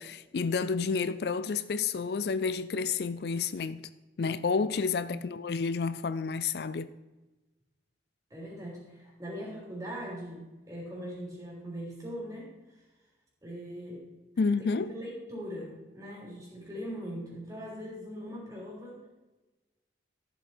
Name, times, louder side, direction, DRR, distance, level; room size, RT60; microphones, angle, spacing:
voice 1, 0.0-3.9 4.2-6.9 14.4-14.9, left 5 dB, 65° left, 0.4 m, -30 dB
voice 2, 8.3-12.5 13.4-14.1 14.6-19.0, equal, 20° right, 3.6 m, -41 dB
13.5 x 7.5 x 4.4 m
head